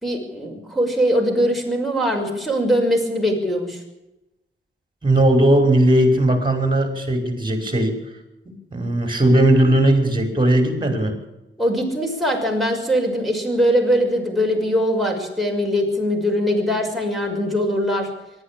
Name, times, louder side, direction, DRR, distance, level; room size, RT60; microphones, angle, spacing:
voice 1, 0.0-3.8 11.6-18.1, equal, ahead, 2 dB, 6.0 m, -21 dB
voice 2, 5.0-8.0 8.5-11.1, right 1 dB, 20° right, 6 dB, 5.8 m, -17 dB
24.0 x 12.5 x 8.7 m, 0.96 s
wide cardioid pair, 115°, 21 cm